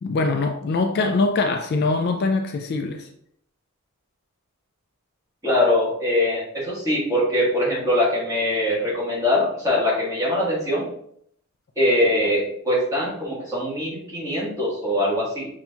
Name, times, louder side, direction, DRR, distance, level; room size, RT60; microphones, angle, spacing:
voice 1, 0.0-3.1, left 3 dB, 45° left, 5 dB, 0.3 m, -23 dB
voice 2, 5.4-10.9 11.8-15.5, left 1 dB, 15° right, -7 dB, 1.4 m, -22 dB
5.6 x 2.7 x 2.3 m, 0.68 s
head